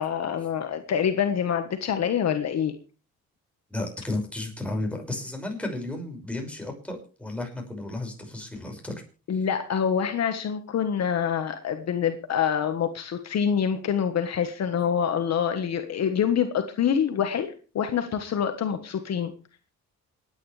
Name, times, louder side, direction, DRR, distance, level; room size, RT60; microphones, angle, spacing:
voice 1, 0.0-2.7 9.3-19.3, left 8 dB, 60° left, 7 dB, 1.5 m, -26 dB
voice 2, 3.7-9.0 9.3-9.4, left 2 dB, 5° left, 1 dB, 5.9 m, -33 dB
27.5 x 9.7 x 3.3 m, 0.36 s
cardioid pair, 90°, 30 cm